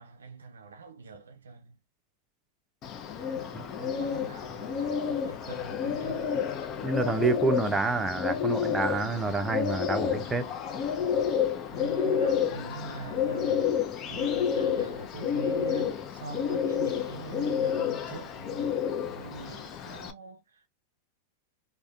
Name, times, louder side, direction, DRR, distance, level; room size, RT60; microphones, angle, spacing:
voice 1, 0.0-1.8 3.3-6.3 11.7-13.7 14.0-20.7, right 4 dB, 85° right, 0.4 m, -43 dB
Bird, 2.8-20.1, left 7 dB, 40° left, 0.5 m, -30 dB
voice 2, 6.8-10.5, right 3 dB, 15° right, 0.6 m, -28 dB
3.4 x 2.1 x 2.3 m
hypercardioid pair, 100°, 0 cm